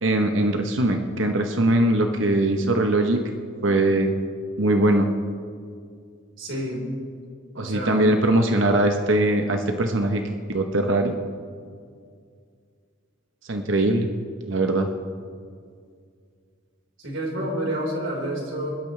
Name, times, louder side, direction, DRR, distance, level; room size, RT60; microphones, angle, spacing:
voice 1, 0.0-3.2 3.6-4.2 4.6-5.1 7.6-10.2 10.5-11.2 13.5-14.1 14.5-14.9, right 1 dB, 75° right, 5 dB, 1.0 m, -21 dB
voice 2, 6.4-6.8 7.5-8.1 17.0-18.7, right 1 dB, 90° right, -2 dB, 4.2 m, -29 dB
22.5 x 12.5 x 3.3 m, 2.1 s
head